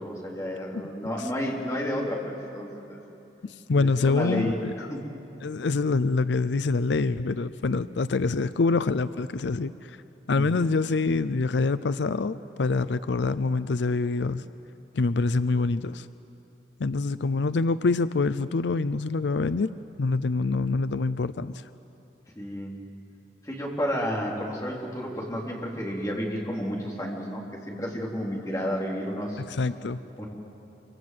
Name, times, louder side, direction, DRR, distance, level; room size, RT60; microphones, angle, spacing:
voice 1, 0.0-3.0 3.8-4.6 4.9-5.1 10.3-10.7 22.4-22.8 23.4-29.4 30.2-30.3, equal, 20° left, -3 dB, 4.0 m, -31 dB
voice 2, 3.4-4.7 5.4-10.0 10.3-14.4 14.9-16.1 16.8-19.7 20.0-21.6 29.4-30.0, left 3 dB, 85° left, 14 dB, 0.5 m, -25 dB
27.0 x 25.5 x 7.9 m, 2.9 s
head